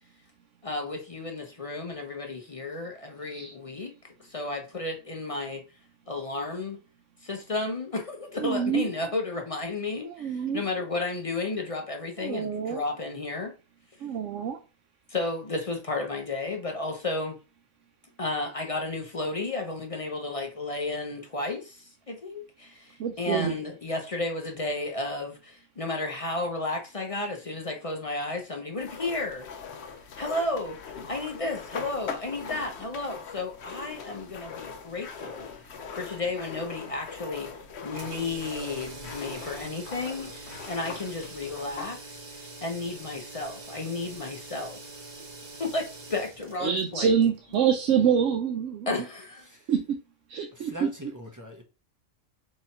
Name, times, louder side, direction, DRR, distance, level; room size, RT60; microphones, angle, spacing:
voice 1, 0.6-5.6 6.1-6.8 7.2-13.5 15.1-17.4 18.2-29.5 30.2-35.5 35.9-37.5 37.8-44.8 45.6-47.1 48.9-49.5, left 2 dB, 40° left, 0.5 m, -33 dB
voice 2, 8.4-8.9 10.1-10.8 12.2-12.8 14.0-14.6 23.0-23.6 46.6-48.9 49.7-50.0 50.3-50.9, right 8 dB, 75° right, 0.9 m, -26 dB
sound 1, 28.8-42.0, left 6 dB, 65° left, 0.9 m, -41 dB
sound 2, 37.9-48.0, right 3 dB, 35° right, 1.0 m, -44 dB
voice 3, 50.5-51.6, equal, 20° right, 0.6 m, -41 dB
4.1 x 2.8 x 4.3 m
omnidirectional pair, 1.3 m